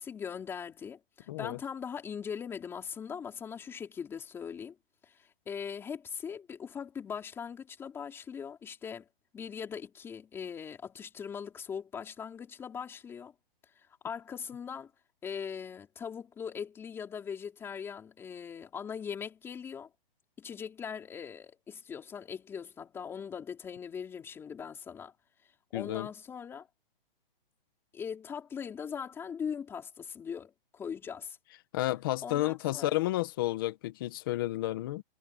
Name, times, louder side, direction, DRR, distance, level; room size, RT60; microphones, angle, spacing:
voice 1, 0.0-4.7 5.0-9.1 9.3-13.3 13.8-14.9 15.2-19.9 20.4-25.1 25.7-26.7 27.9-31.4 32.2-33.0, left 7 dB, 10° left, 4.6 m, -40 dB
voice 2, 1.3-1.6 25.7-26.1 31.7-35.0, left 16 dB, 25° left, 1.3 m, -31 dB
hypercardioid pair, 175°, 29 cm